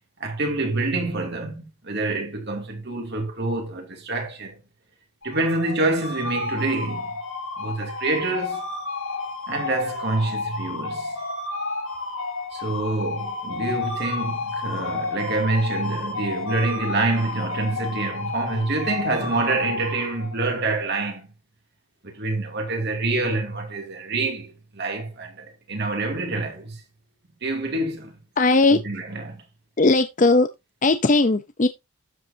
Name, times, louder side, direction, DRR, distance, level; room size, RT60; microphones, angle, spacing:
voice 1, 0.2-4.6 5.2-7.1 7.6-8.6 9.5-11.2 12.5-21.3 22.0-26.8 27.4-28.1 28.7-29.4, right 2 dB, 50° right, 2.6 m, -26 dB
sound 1, 5.2-20.5, left 3 dB, 70° left, 2.9 m, -31 dB
voice 2, 28.4-28.8 29.8-30.5 30.8-31.7, left 3 dB, 35° left, 0.6 m, -18 dB
12.5 x 7.9 x 2.7 m
head